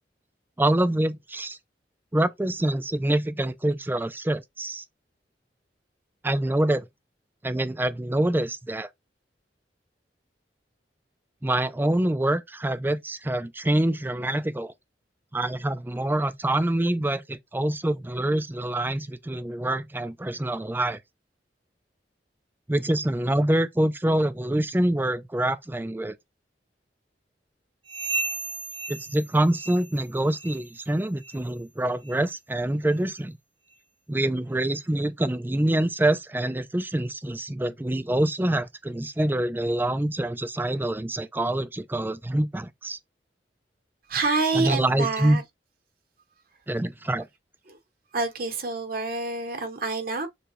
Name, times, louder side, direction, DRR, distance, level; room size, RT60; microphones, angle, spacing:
voice 1, 0.6-1.6 2.1-4.8 6.2-6.8 7.4-8.9 11.4-14.7 15.3-21.0 22.7-26.2 28.9-33.4 34.1-43.0 44.5-45.4 46.7-47.3, right 1 dB, 10° right, 0.4 m, -25 dB
sound 1, 27.9-30.1 30.3-30.7 31.2-31.4 32.0-32.2 32.9-33.0 33.7-33.8, right 2 dB, 30° right, 0.9 m, -34 dB
voice 2, 44.1-45.4 47.7-47.8 48.1-50.3, right 3 dB, 55° right, 1.0 m, -27 dB
6.8 x 2.3 x 3.1 m
head